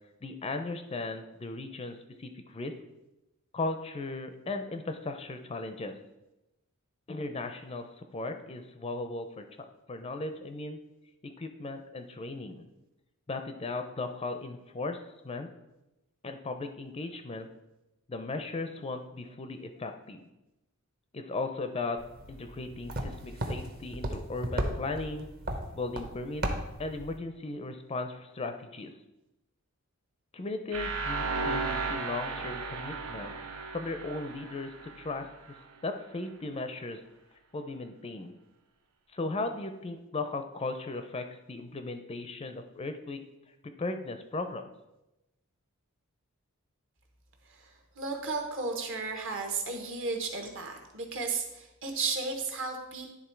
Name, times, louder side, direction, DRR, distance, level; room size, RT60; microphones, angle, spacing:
voice 1, 0.2-2.7 3.5-5.9 7.1-9.5 9.9-10.8 11.2-12.6 13.3-15.5 16.2-17.5 18.1-20.2 21.1-22.0 22.3-25.3 25.7-26.5 26.8-28.9 30.3-33.3 33.7-35.6 35.8-37.0 37.5-38.3 39.1-43.2 43.8-44.7, left 3 dB, 25° left, 7 dB, 0.4 m, -37 dB
sound 1, 22.0-27.2, right 1 dB, 45° right, 0.9 m, -36 dB
sound 2, 30.7-35.6, right 4 dB, 75° right, 0.9 m, -35 dB
voice 2, 47.5-53.1, right 4 dB, 60° right, 3 dB, 1.2 m, -34 dB
10.5 x 3.5 x 4.4 m, 0.96 s
head